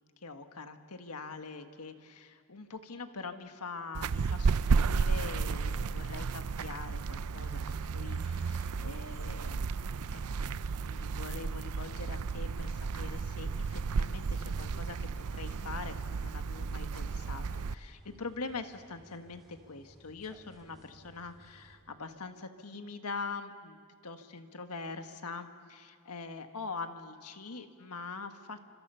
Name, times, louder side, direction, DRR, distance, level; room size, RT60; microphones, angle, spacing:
voice 1, 0.2-9.7 10.1-28.7, left 4 dB, 80° left, 7 dB, 1.6 m, -43 dB
sound 1, 3.9-17.7, right 4 dB, 75° right, 0.5 m, -33 dB
sound 2, 12.3-21.8, right 1 dB, ahead, 5.0 m, -59 dB
30.0 x 26.0 x 5.7 m, 2.2 s
head